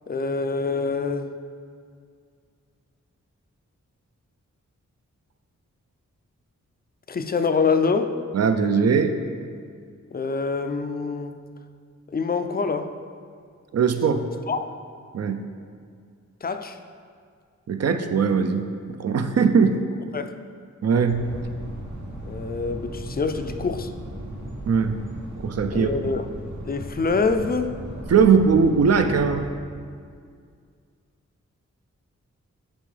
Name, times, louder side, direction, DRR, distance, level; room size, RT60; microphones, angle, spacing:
voice 1, 0.1-1.3 7.1-8.2 10.1-11.4 12.1-13.0 14.5-14.7 16.4-16.8 20.1-20.3 22.2-23.9 25.7-26.3 26.7-27.8, left 4 dB, 30° left, 8 dB, 0.4 m, -25 dB
voice 2, 8.3-9.1 13.7-14.3 15.1-15.4 17.7-19.8 20.8-21.3 24.7-25.0 25.4-25.9 28.1-29.5, right 5 dB, 55° right, 8 dB, 0.5 m, -20 dB
sound 1, 21.1-29.5, right 1 dB, 70° right, 1.3 m, -36 dB
10.5 x 4.4 x 3.3 m, 2.2 s
wide cardioid pair, 85°, 30 cm